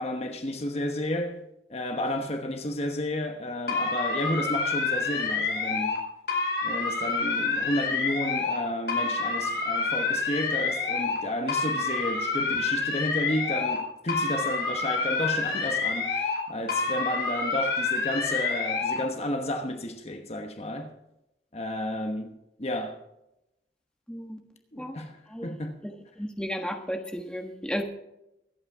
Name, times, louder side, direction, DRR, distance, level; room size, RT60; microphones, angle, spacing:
voice 1, 0.0-1.4 1.7-6.0 6.6-20.9 21.5-22.3 22.6-23.0 24.7-25.8, left 1 dB, 35° left, 1.1 m, -32 dB
sound 1, 3.7-6.0 6.3-8.6 8.9-11.2 11.5-13.8 14.1-16.4 16.7-19.0, left 4 dB, 65° left, 4.2 m, -28 dB
voice 2, 24.1-24.4 24.8-24.9 25.3-25.5 25.8-27.8, equal, 5° left, 1.4 m, -34 dB
24.0 x 8.9 x 3.6 m
head